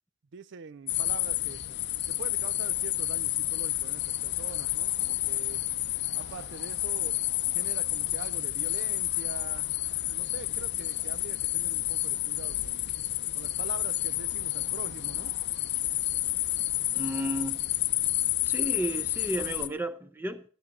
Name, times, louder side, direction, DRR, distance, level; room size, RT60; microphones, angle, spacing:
voice 1, 0.3-1.6 2.1-5.6 6.1-9.8 10.1-12.8 13.3-15.4, right 5 dB, 60° right, 0.5 m, -44 dB
sound 1, 0.9-19.7, left 14 dB, 60° left, 0.6 m, -30 dB
voice 2, 16.9-17.7 18.4-20.4, right 1 dB, 10° right, 0.6 m, -33 dB
12.0 x 11.5 x 4.1 m
head